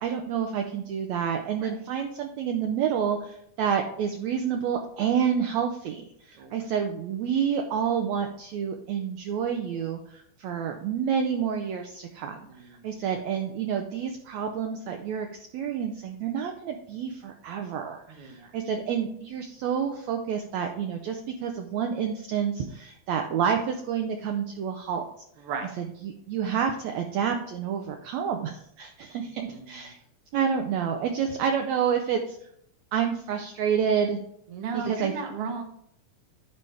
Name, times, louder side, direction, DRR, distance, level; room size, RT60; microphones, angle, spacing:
voice 1, 0.0-25.0 25.8-30.0 30.3-32.4 32.9-34.2 34.7-35.1, right 7 dB, 80° right, 4 dB, 1.7 m, -29 dB
voice 2, 6.3-6.7 12.3-12.8 18.1-18.5 25.4-25.7 29.5-29.8 34.5-35.6, right 5 dB, 60° right, 5 dB, 1.6 m, -36 dB
11.0 x 4.9 x 3.3 m, 0.70 s
omnidirectional pair, 3.7 m